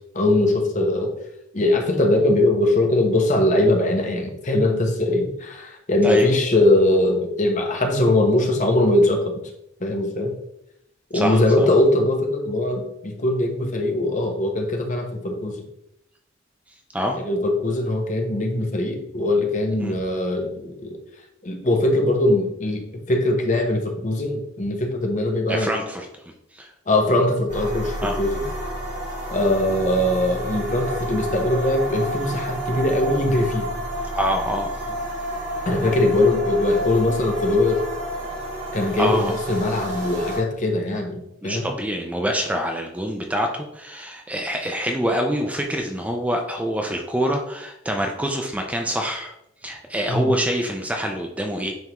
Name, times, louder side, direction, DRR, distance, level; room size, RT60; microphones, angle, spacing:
voice 1, 0.1-1.1 1.5-9.4 9.8-10.3 11.1-15.6 17.1-21.0 21.4-25.7 26.9-28.5 29.3-33.7 35.6-37.8 38.7-41.7 50.1-50.3, left 1 dB, 40° left, 3 dB, 0.9 m, -21 dB
voice 2, 11.1-11.7 16.9-17.2 19.8-19.9 25.5-26.1 26.5-26.7 28.0-28.2 34.1-35.0 39.0-39.3 41.4-49.3 49.6-51.7, equal, 5° right, 2 dB, 0.5 m, -25 dB
sound 1, 27.5-40.4, right 1 dB, 40° right, 1.7 m, -30 dB
9.2 x 3.5 x 3.0 m, 0.79 s
head